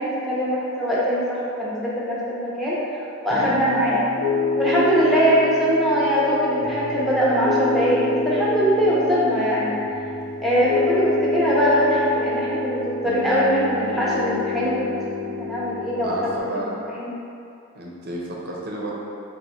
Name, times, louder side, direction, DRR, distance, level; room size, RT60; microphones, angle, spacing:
voice 1, 0.0-2.8 3.2-4.0 4.5-9.7 10.4-16.1 16.4-16.7 16.9-17.2, equal, ahead, -8 dB, 0.6 m, -22 dB
Piano, 3.3-16.4, left 3 dB, 40° left, 0.7 m, -27 dB
voice 2, 3.3-3.6 16.0-16.8 17.7-18.9, right 1 dB, 45° right, -3 dB, 0.5 m, -31 dB
4.0 x 2.1 x 4.3 m, 2.6 s
head